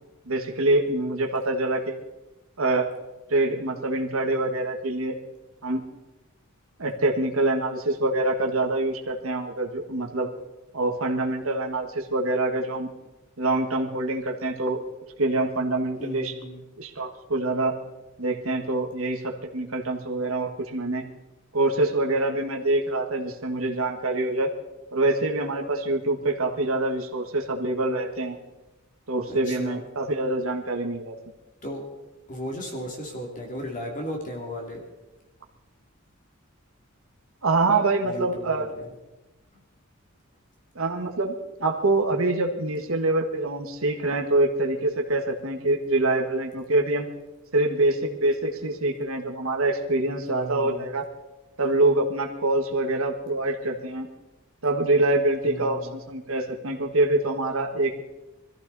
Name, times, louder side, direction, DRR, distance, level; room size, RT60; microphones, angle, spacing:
voice 1, 0.2-1.9 2.6-2.9 3.3-5.1 5.6-5.9 6.8-10.3 10.7-12.9 13.4-14.8 15.2-16.3 16.8-17.8 18.2-21.0 21.5-24.5 24.9-28.4 29.1-31.1 37.4-38.7 40.7-47.1 47.5-51.0 51.6-54.1 54.6-58.0, right 2 dB, 80° right, 2 dB, 1.7 m, -25 dB
voice 2, 16.0-16.6 29.3-29.8 31.6-31.8 32.3-34.8 38.0-38.9 50.3-50.9 55.4-56.0, equal, 40° left, 1 dB, 2.7 m, -35 dB
21.5 x 14.5 x 4.1 m, 1.0 s
head